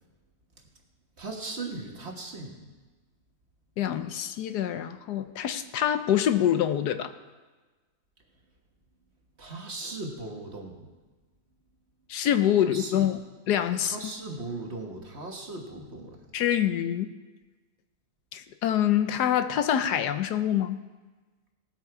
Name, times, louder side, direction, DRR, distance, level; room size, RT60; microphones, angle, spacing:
voice 1, 1.2-2.7 9.4-10.9 12.6-13.1 13.8-16.2, right 3 dB, 40° right, 2 dB, 1.6 m, -38 dB
voice 2, 3.8-7.1 12.1-13.2 13.5-14.0 16.3-17.1 18.3-20.8, left 10 dB, 75° left, 11 dB, 1.2 m, -25 dB
18.0 x 8.1 x 4.7 m, 1.3 s
omnidirectional pair, 1.8 m